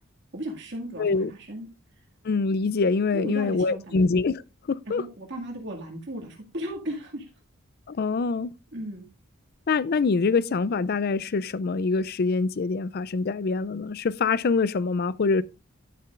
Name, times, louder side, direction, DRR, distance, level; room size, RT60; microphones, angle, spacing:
voice 1, 0.3-1.7 3.1-4.0 4.9-7.3 8.7-9.0, right 1 dB, 55° right, 2.1 m, -36 dB
voice 2, 1.0-1.3 2.2-4.4 4.7-5.0 7.9-8.5 9.7-15.4, left 4 dB, 45° left, 0.4 m, -25 dB
11.0 x 10.5 x 2.4 m
head